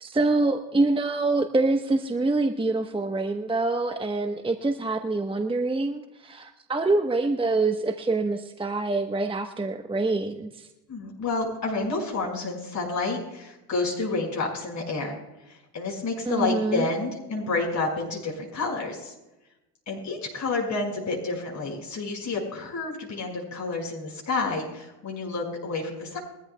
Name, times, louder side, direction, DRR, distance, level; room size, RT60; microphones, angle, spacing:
voice 1, 0.0-10.5 16.3-16.9, right 3 dB, 10° right, 6 dB, 1.1 m, -25 dB
voice 2, 10.9-15.2 15.5-19.1 19.9-26.2, left 3 dB, 35° left, -1 dB, 5.3 m, -29 dB
23.5 x 13.5 x 2.3 m, 0.96 s
hypercardioid pair, 65°, 48 cm